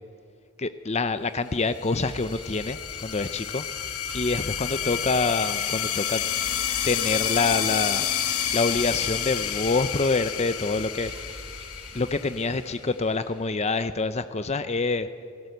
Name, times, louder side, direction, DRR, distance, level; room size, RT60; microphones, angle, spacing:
voice 1, 0.6-6.2 6.8-8.2 8.5-11.5 11.9-15.1, left 3 dB, 30° left, 11 dB, 0.6 m, -26 dB
sound 1, 1.7-12.9, left 10 dB, 75° left, 2.0 m, -30 dB
sound 2, 2.0-12.2, right 1 dB, 25° right, 2.0 m, -45 dB
27.0 x 19.0 x 8.0 m, 2.3 s
head